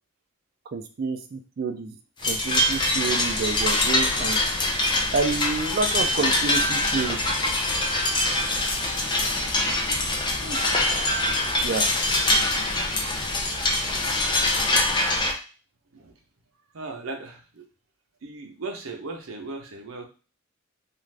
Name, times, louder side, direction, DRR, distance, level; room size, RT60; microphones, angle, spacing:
voice 1, 0.7-2.0 2.2-4.4 5.1-7.3 11.6-11.9, right 4 dB, 45° right, 6 dB, 0.4 m, -28 dB
sound 1, 2.2-15.3, left 1 dB, 20° left, 0.4 m, -24 dB
voice 2, 16.7-17.7 18.2-20.1, right 3 dB, 80° right, 3 dB, 0.7 m, -37 dB
2.4 x 2.4 x 3.2 m, 0.35 s
head